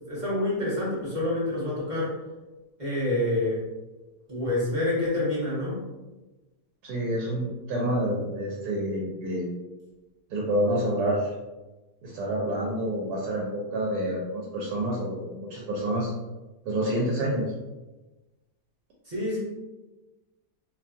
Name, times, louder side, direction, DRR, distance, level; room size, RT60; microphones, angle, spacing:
voice 1, 0.1-2.1 2.8-3.6 4.3-5.8 19.0-19.4, left 1 dB, 35° right, -8 dB, 1.0 m, -27 dB
voice 2, 6.8-9.5 10.3-11.3 12.0-16.1 16.6-17.5, right 1 dB, 75° right, -3 dB, 1.1 m, -28 dB
2.8 x 2.3 x 2.5 m, 1.1 s
omnidirectional pair, 1.8 m